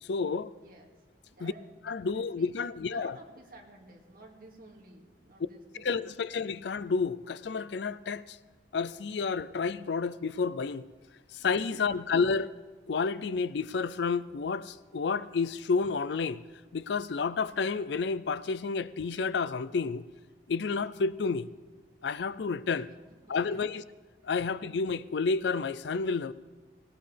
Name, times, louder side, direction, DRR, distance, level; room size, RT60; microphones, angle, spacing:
voice 1, 0.0-0.5 1.4-1.5 1.9-3.1 5.7-8.4 8.7-10.9 11.3-12.5 12.9-16.4 16.7-20.1 20.5-21.5 22.0-22.9 23.3-23.8 24.2-26.3, left 4 dB, 70° left, 0.5 m, -30 dB
voice 2, 0.5-2.5 2.9-6.2 11.3-12.0 22.8-23.6 24.2-24.3, right 2 dB, 50° right, 2.3 m, -53 dB
18.5 x 18.5 x 3.4 m
head